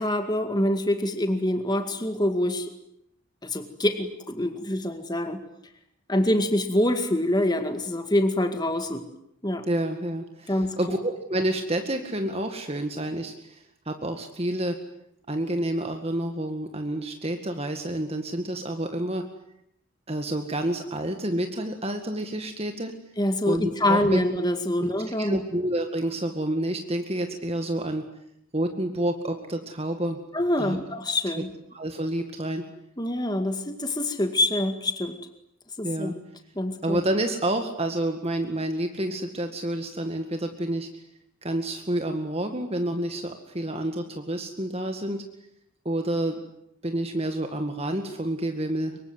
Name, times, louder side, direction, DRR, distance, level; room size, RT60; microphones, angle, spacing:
voice 1, 0.0-2.7 3.4-5.4 6.1-9.0 9.4-9.6 10.5-10.8 23.2-25.4 30.3-31.5 33.0-35.2 35.8-36.1 36.6-37.0, left 1 dB, 20° left, 7 dB, 2.1 m, -25 dB
voice 2, 9.7-14.8 15.3-19.2 20.1-22.9 23.5-24.2 25.1-28.1 28.5-30.2 30.6-30.8 31.4-31.5 31.7-32.6 35.8-36.1 36.8-41.0 41.4-45.2 45.9-46.4 46.8-49.0, right 1 dB, 25° right, 5 dB, 2.0 m, -29 dB
25.5 x 23.5 x 9.7 m, 0.76 s
head